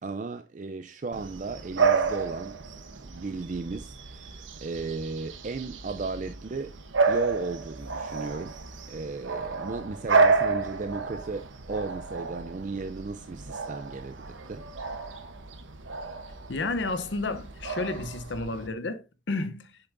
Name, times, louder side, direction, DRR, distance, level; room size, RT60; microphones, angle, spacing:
voice 1, 0.0-2.6 3.0-6.8 7.1-8.6 8.9-14.9, right 3 dB, 40° right, 0.4 m, -35 dB
Bark / Bird vocalization bird call bird song, 1.1-18.7, right 4 dB, 90° right, 1.0 m, -30 dB
voice 2, 16.5-19.8, left 3 dB, 70° left, 0.8 m, -31 dB
8.1 x 6.8 x 2.6 m
head